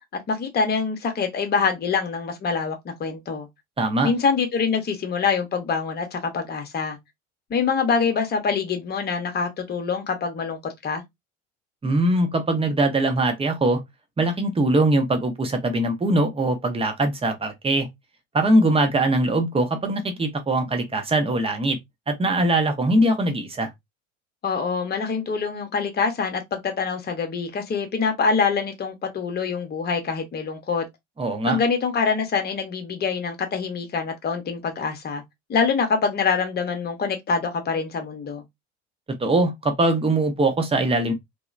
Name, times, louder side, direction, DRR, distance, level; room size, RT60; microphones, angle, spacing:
voice 1, 0.3-3.5 4.0-7.0 7.5-11.0 24.4-30.9 31.5-35.2 35.5-38.4, left 5 dB, 25° left, 0.8 m, -25 dB
voice 2, 3.8-4.1 11.8-13.8 14.2-17.9 18.3-21.8 22.1-23.7 31.2-31.6 39.2-41.1, right 2 dB, 15° right, 0.8 m, -21 dB
2.9 x 2.1 x 2.4 m
figure-of-eight pair, 65°, 37 cm